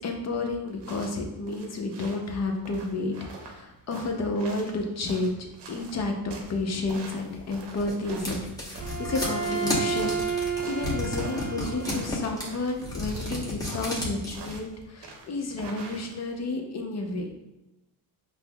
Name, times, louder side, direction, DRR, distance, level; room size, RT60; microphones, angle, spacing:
voice 1, 0.0-8.4 8.6-17.3, left 2 dB, 35° left, 3 dB, 0.6 m, -31 dB
sound 1, 0.7-16.4, right 3 dB, 60° right, 0.8 m, -45 dB
sound 2, 7.3-14.6, left 2 dB, 10° left, 1.0 m, -33 dB
Bowed string instrument, 8.8-12.2, right 5 dB, 20° right, 0.4 m, -31 dB
5.3 x 2.0 x 2.3 m, 0.99 s
cardioid pair, 90°, 46 cm